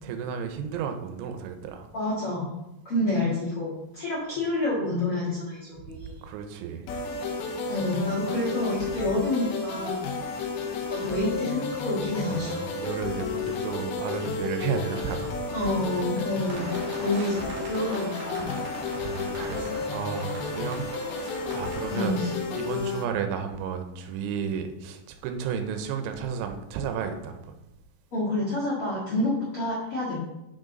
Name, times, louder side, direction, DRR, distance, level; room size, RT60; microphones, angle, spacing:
voice 1, 0.0-1.9 6.0-6.9 10.9-11.1 12.3-15.4 16.2-16.3 17.1-17.3 18.9-22.2 22.5-27.4, right 7 dB, 80° right, 6 dB, 3.1 m, -33 dB
voice 2, 1.9-2.5 2.8-6.1 7.7-10.0 10.9-12.5 15.5-16.7 17.0-18.5 21.9-22.3 28.1-30.2, left 1 dB, 55° left, -8 dB, 1.5 m, -28 dB
sound 1, 6.9-23.0, left 4 dB, 90° left, 2.2 m, -32 dB
sound 2, 16.5-22.2, right 2 dB, 50° right, 2.1 m, -40 dB
6.4 x 6.4 x 3.9 m, 0.91 s
omnidirectional pair, 5.6 m